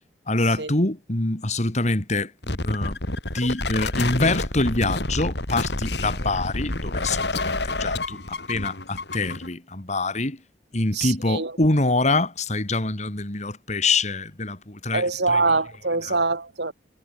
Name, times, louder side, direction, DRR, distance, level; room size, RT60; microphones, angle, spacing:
voice 1, 0.3-3.0 3.3-10.4 10.7-15.4 16.0-16.2, left 2 dB, 40° left, 2.4 m, -25 dB
sound 1, 2.4-9.5, left 2 dB, 75° left, 4.7 m, -28 dB
voice 2, 10.9-11.5 14.9-16.7, right 3 dB, 80° right, 3.2 m, -24 dB
head